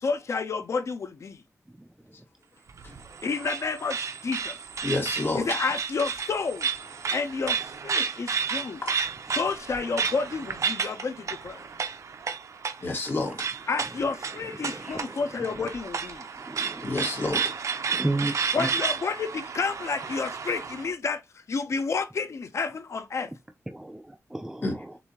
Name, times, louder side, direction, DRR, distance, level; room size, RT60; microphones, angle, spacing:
voice 1, 0.0-1.4 3.2-4.6 5.4-6.7 7.1-8.8 9.3-11.7 13.7-16.2 18.5-21.2 21.5-23.3, left 4 dB, 60° left, 0.7 m, -30 dB
sound 1, 2.7-20.9, right 6 dB, 65° right, 0.7 m, -32 dB
voice 2, 4.8-5.5 8.8-8.9 12.8-13.4 16.8-17.5 24.6-24.8, left 2 dB, 40° left, 1.6 m, -29 dB
voice 3, 14.6-15.2 15.6-15.7 16.4-16.9 17.9-18.7 23.7-25.0, right 2 dB, 10° right, 0.4 m, -33 dB
6.9 x 2.7 x 2.9 m
wide cardioid pair, 125°, 6 cm